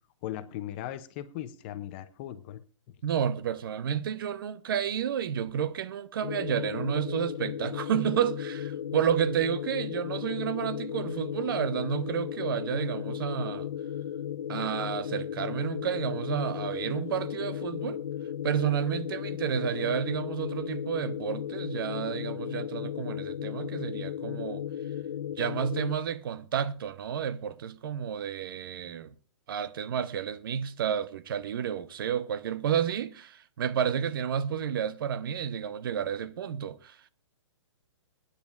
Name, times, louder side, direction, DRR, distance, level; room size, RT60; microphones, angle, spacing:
voice 1, 0.2-2.6, left 12 dB, 20° left, 0.5 m, -38 dB
voice 2, 3.0-13.7 14.5-18.0 18.4-24.6 25.4-29.1 29.5-37.1, right 9 dB, 45° right, 0.7 m, -31 dB
sound 1, 6.2-26.0, left 9 dB, 85° left, 0.5 m, -35 dB
23.0 x 10.0 x 2.4 m
hypercardioid pair, 160°, 16 cm